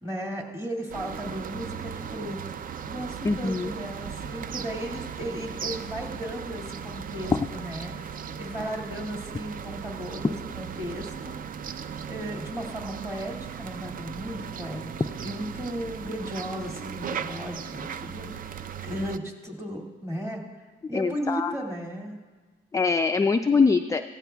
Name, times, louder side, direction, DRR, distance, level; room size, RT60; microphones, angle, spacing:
voice 1, 0.0-2.4 2.9-11.3 12.1-18.6 18.8-20.4 20.9-22.2, equal, 15° right, 0 dB, 2.2 m, -35 dB
sound 1, 0.9-19.2, right 7 dB, 45° right, 0.5 m, -37 dB
voice 2, 3.2-3.7 20.9-21.5 22.7-24.0, left 4 dB, 15° left, 7 dB, 0.3 m, -23 dB
15.0 x 15.0 x 2.3 m, 1.3 s
cardioid pair, 90°, 20 cm